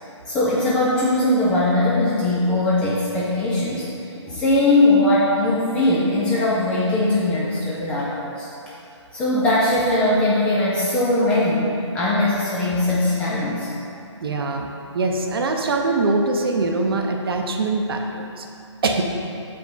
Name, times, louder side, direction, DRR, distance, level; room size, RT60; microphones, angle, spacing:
voice 1, 0.3-3.9 4.1-8.5 9.1-13.7, left 1 dB, 5° left, -7 dB, 0.3 m, -20 dB
voice 2, 14.2-14.7 14.9-18.5 18.8-19.0, right 3 dB, 50° right, 3 dB, 0.8 m, -23 dB
6.7 x 5.1 x 3.9 m, 2.8 s
figure-of-eight pair, 150°, 16 cm